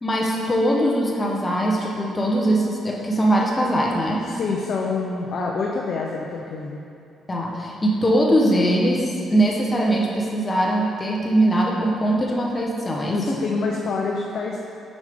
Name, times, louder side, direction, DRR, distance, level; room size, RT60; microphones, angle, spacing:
voice 1, 0.0-4.2 7.3-13.4, right 1 dB, 25° left, -2 dB, 0.9 m, -21 dB
voice 2, 4.3-6.8 13.1-14.6, left 4 dB, 60° left, -1 dB, 0.5 m, -26 dB
6.2 x 5.2 x 3.5 m, 2.5 s
cardioid pair, 90°, 0 cm